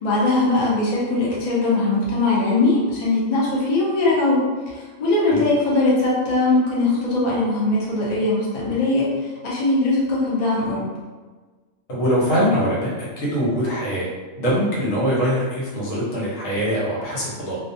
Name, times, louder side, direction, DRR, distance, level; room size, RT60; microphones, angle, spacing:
voice 1, 0.0-4.4 4.7-10.9, left 2 dB, 40° left, -6 dB, 0.6 m, -20 dB
voice 2, 11.9-14.1 14.4-17.6, equal, 75° left, -6 dB, 1.2 m, -22 dB
2.4 x 2.3 x 2.6 m, 1.3 s
omnidirectional pair, 1.4 m